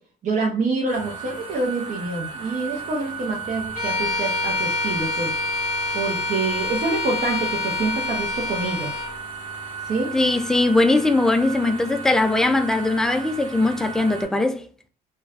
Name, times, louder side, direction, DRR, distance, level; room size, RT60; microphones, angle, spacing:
voice 1, 0.2-5.3 5.9-8.9 9.8-10.1, right 3 dB, 50° right, 0.8 m, -26 dB
sound 1, 0.9-14.2, right 5 dB, 30° right, 1.2 m, -35 dB
Bowed string instrument, 3.7-9.1, left 3 dB, 50° left, 1.4 m, -27 dB
voice 2, 10.1-14.6, left 2 dB, 5° left, 0.3 m, -20 dB
3.2 x 2.4 x 2.4 m
cardioid pair, 110°, 17 cm